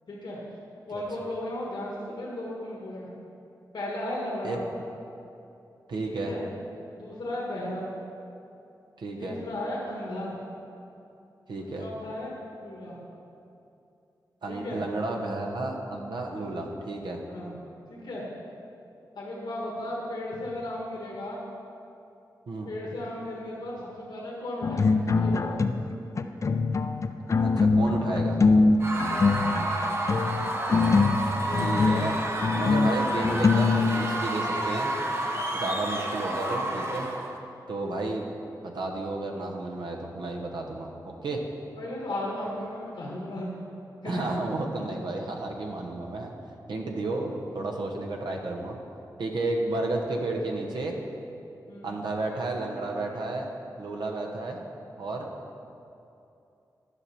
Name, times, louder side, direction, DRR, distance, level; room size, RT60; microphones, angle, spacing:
voice 1, 0.1-0.4 0.9-3.1 3.7-4.6 6.1-6.4 6.9-7.9 9.2-10.3 11.6-13.0 14.5-14.8 16.4-16.5 17.3-17.6 17.9-18.2 19.1-21.4 22.6-25.6 29.1-30.1 41.8-43.5 44.0-44.4 51.7-51.9, left 1 dB, 80° left, -5 dB, 1.5 m, -35 dB
voice 2, 5.9-6.3 9.0-9.4 11.5-11.9 14.4-17.2 22.5-22.7 27.4-28.4 31.6-32.2 32.6-34.9 35.5-37.1 37.7-38.3 38.6-41.4 44.0-46.3 46.7-48.8 49.2-50.9 51.8-53.5 53.8-54.6 55.0-55.3, right 2 dB, 80° right, 1 dB, 1.0 m, -32 dB
sound 1, 24.6-25.9 26.2-34.3, left 4 dB, 45° left, 0.4 m, -23 dB
Screaming / Cheering / Crowd, 28.8-37.4, right 1 dB, 35° right, 0.8 m, -30 dB
11.5 x 6.1 x 4.3 m, 2.7 s
wide cardioid pair, 85°, 7 cm